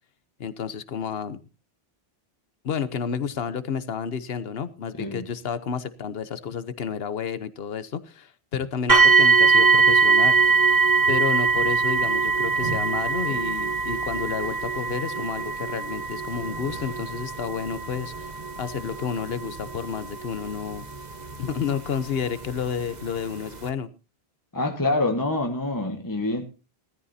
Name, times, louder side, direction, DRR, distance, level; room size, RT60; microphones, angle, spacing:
voice 1, 0.4-1.4 2.6-10.4 11.1-20.8 21.4-23.9, left 7 dB, 70° left, 1.2 m, -31 dB
sound 1, 8.9-21.8 22.6-22.7 23.3-23.4, right 4 dB, 45° right, 1.3 m, -22 dB
voice 2, 24.5-26.4, left 2 dB, 20° left, 1.5 m, -26 dB
19.0 x 14.0 x 2.8 m
omnidirectional pair, 1.1 m